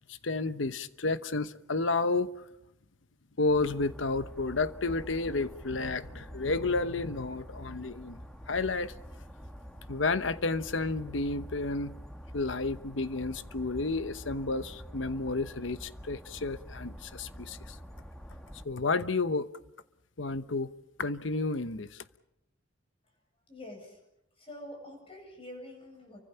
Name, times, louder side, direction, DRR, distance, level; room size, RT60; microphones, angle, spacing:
voice 1, 0.1-2.4 3.4-8.2 8.5-8.9 9.9-11.9 12.3-17.8 18.6-19.5 20.2-20.7 21.0-22.0, left 3 dB, 85° left, 1.0 m, -31 dB
sound 1, 3.5-18.7, equal, 5° left, 1.5 m, -46 dB
voice 2, 23.5-24.0 24.3-26.2, left 1 dB, 30° left, 7.9 m, -46 dB
29.5 x 24.5 x 5.8 m
head